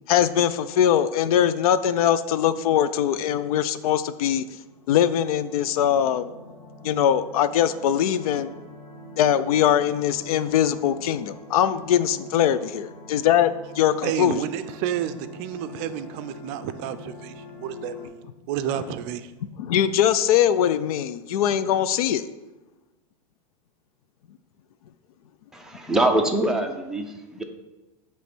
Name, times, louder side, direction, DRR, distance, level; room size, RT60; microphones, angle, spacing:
voice 1, 0.1-4.5 4.9-6.3 6.8-8.5 9.2-14.4 19.6-22.3, left 10 dB, 85° left, 14 dB, 0.5 m, -22 dB
sound 1, 4.6-18.1, left 2 dB, 65° left, 2.0 m, -44 dB
voice 2, 14.0-19.3, right 10 dB, 50° right, 11 dB, 0.5 m, -31 dB
voice 3, 25.5-27.4, right 1 dB, 5° right, 2 dB, 0.7 m, -24 dB
8.3 x 3.2 x 6.0 m, 1.1 s
supercardioid pair, 135°, 18 cm